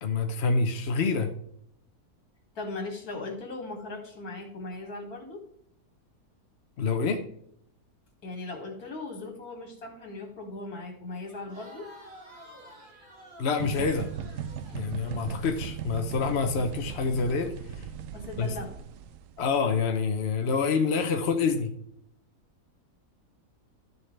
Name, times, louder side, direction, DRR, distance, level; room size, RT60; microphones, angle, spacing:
voice 1, 0.0-1.3 6.8-7.2 13.4-14.1 14.7-17.8 18.4-18.5 19.4-21.7, left 4 dB, 50° left, 5 dB, 1.0 m, -27 dB
voice 2, 2.5-5.4 8.2-11.9 18.1-18.8, left 2 dB, 70° left, 1 dB, 2.8 m, -38 dB
Crowd, 11.3-16.2, equal, 30° right, 2.2 m, -51 dB
sound 1, 13.6-19.5, right 8 dB, 70° right, 0.9 m, -38 dB
12.5 x 6.8 x 3.3 m, 0.70 s
omnidirectional pair, 1.6 m